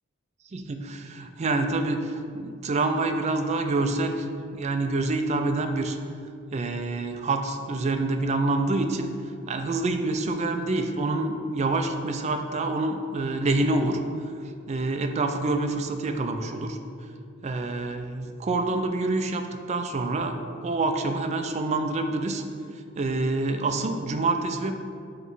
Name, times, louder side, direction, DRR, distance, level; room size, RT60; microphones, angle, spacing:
voice 1, 0.5-4.3 4.5-6.0 6.5-9.1 9.5-14.0 14.7-16.8 17.4-22.4 23.0-24.8, right 2 dB, 35° right, 6 dB, 0.4 m, -27 dB
5.8 x 3.0 x 5.4 m, 2.3 s
head